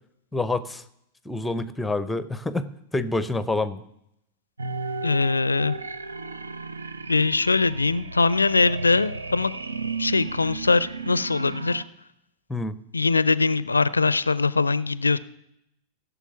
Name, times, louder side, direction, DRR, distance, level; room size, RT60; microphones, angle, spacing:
voice 1, 0.3-0.8 1.3-3.8 12.5-12.7, left 2 dB, 5° left, 15 dB, 0.7 m, -27 dB
sound 1, 4.6-11.9, right 4 dB, 75° right, 0.6 m, -34 dB
voice 2, 5.0-5.8 7.1-9.5 10.0-11.8 12.9-15.2, left 4 dB, 80° left, 19 dB, 0.4 m, -22 dB
16.0 x 7.0 x 5.9 m, 0.77 s
figure-of-eight pair, 90°, 0 cm